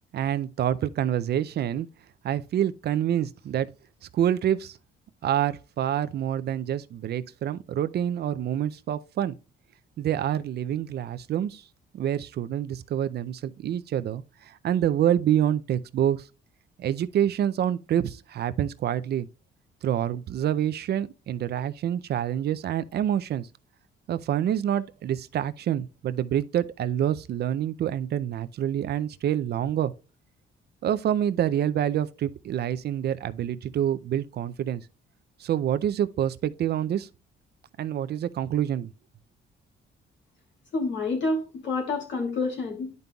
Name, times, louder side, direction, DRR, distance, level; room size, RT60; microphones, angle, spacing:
voice 1, 0.1-1.9 2.2-3.7 4.1-4.8 5.2-9.3 10.0-11.6 11.9-16.2 16.8-19.3 19.8-23.5 24.1-29.9 30.8-34.8 35.4-37.1 37.8-38.9, right 10 dB, 55° right, 0.4 m, -27 dB
voice 2, 40.7-42.9, left 3 dB, 70° left, 2.7 m, -28 dB
10.5 x 5.3 x 2.3 m
cardioid pair, 90°, 20 cm